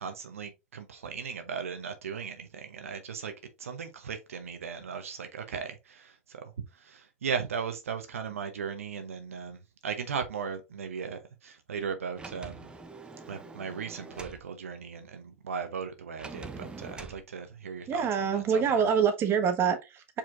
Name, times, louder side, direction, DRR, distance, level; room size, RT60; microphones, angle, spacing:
voice 1, 0.0-3.3 3.6-12.7 13.3-18.1 18.3-18.8, right 6 dB, 80° right, 0.8 m, -37 dB
Sliding door, 12.1-14.4 16.2-17.2, right 3 dB, 15° right, 0.6 m, -44 dB
voice 2, 17.9-20.2, right 7 dB, 35° right, 1.2 m, -26 dB
4.9 x 4.2 x 2.5 m
hypercardioid pair, 100°, 7 cm